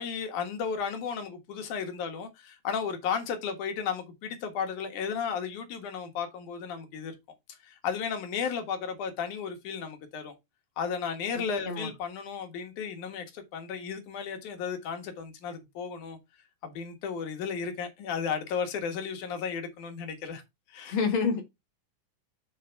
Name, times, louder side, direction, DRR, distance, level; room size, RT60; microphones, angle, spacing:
voice 1, 0.0-7.2 7.6-10.3 10.8-16.2 16.6-20.4 20.7-21.0, left 6 dB, 75° left, 2.9 m, -34 dB
voice 2, 20.9-21.4, left 5 dB, 50° left, 2.0 m, -27 dB
7.5 x 4.6 x 4.5 m
omnidirectional pair, 3.6 m